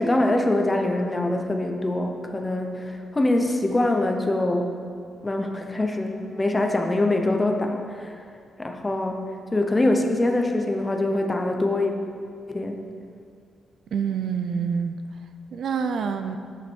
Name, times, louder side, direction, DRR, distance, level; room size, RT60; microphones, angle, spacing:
voice 1, 0.0-4.8 5.2-8.2 8.6-11.9 12.5-12.8, left 2 dB, 15° left, 3 dB, 0.8 m, -24 dB
voice 2, 13.9-15.0 15.5-16.4, right 6 dB, 55° right, 8 dB, 0.6 m, -26 dB
9.8 x 8.5 x 6.2 m, 2.2 s
wide cardioid pair, 180°, 0 cm